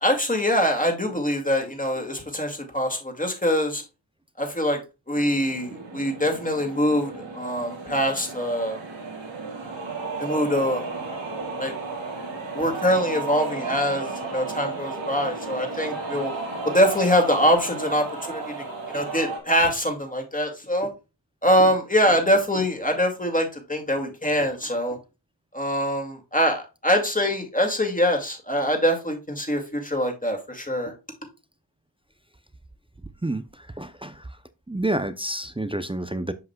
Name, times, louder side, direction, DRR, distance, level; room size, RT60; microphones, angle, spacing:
voice 1, 0.0-3.8 4.4-4.8 5.1-8.8 10.2-10.9 11.6-11.7 12.5-16.3 16.7-18.5 18.9-20.9 21.4-25.0 25.5-30.9, equal, 15° left, 2.3 m, -23 dB
sound 1, 5.1-19.4, right 3 dB, 80° right, 2.2 m, -34 dB
voice 2, 33.8-34.2 34.7-36.3, right 1 dB, 10° right, 0.5 m, -28 dB
7.7 x 5.8 x 2.3 m
cardioid pair, 45°, 45 cm